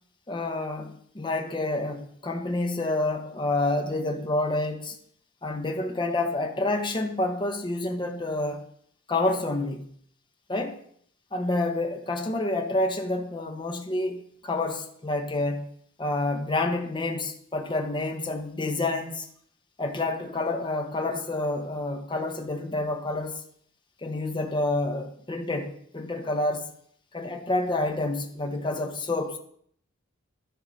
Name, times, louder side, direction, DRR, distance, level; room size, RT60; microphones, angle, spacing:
voice 1, 0.3-5.0 5.4-8.7 9.1-9.9 10.5-10.8 11.3-15.7 16.0-19.3 19.8-23.4 24.0-26.7 27.1-29.4, left 2 dB, 25° left, 0.8 m, -28 dB
13.5 x 5.4 x 3.1 m
head